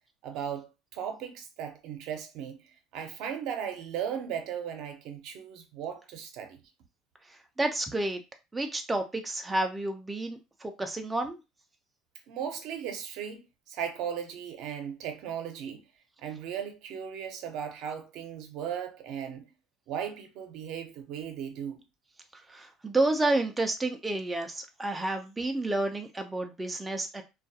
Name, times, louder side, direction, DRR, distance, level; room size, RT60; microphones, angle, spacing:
voice 1, 0.2-6.6 12.3-15.9 16.2-19.5 19.9-21.8, right 8 dB, 65° right, 0.6 m, -37 dB
voice 2, 7.3-8.2 8.5-11.4 22.3-27.2, right 2 dB, 10° right, 0.3 m, -30 dB
2.3 x 2.2 x 2.7 m
cardioid pair, 130°, 0 cm